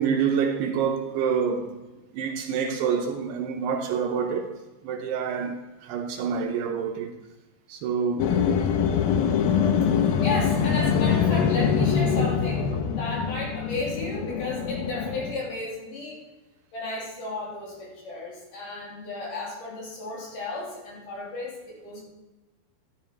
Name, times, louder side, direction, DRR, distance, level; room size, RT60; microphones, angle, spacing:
voice 1, 0.0-1.8 2.1-4.5 4.8-7.1 7.7-8.4, right 6 dB, 80° right, 2.4 m, -27 dB
sound 1, 8.2-15.3, left 7 dB, 80° left, 2.1 m, -24 dB
voice 2, 9.8-16.2 16.7-22.0, left 2 dB, 50° left, 3.9 m, -34 dB
13.0 x 11.0 x 4.5 m
omnidirectional pair, 5.5 m